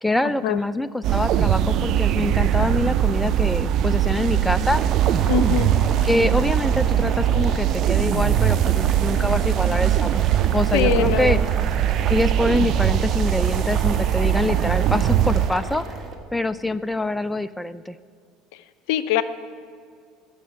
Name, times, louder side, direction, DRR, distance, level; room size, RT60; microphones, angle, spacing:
voice 1, 0.0-4.8 6.0-10.2 10.5-11.4 12.1-16.0 16.3-17.9, left 2 dB, 5° left, 14 dB, 0.4 m, -25 dB
sound 1, 1.0-15.5, right 10 dB, 55° right, 0.5 m, -21 dB
Boiling, 4.6-16.1, right 4 dB, 40° right, 1.8 m, -34 dB
voice 2, 5.3-5.7 10.7-11.4 18.9-19.2, left 11 dB, 70° left, 13 dB, 0.6 m, -22 dB
13.5 x 6.8 x 9.3 m, 2.2 s
hypercardioid pair, 75°, 0 cm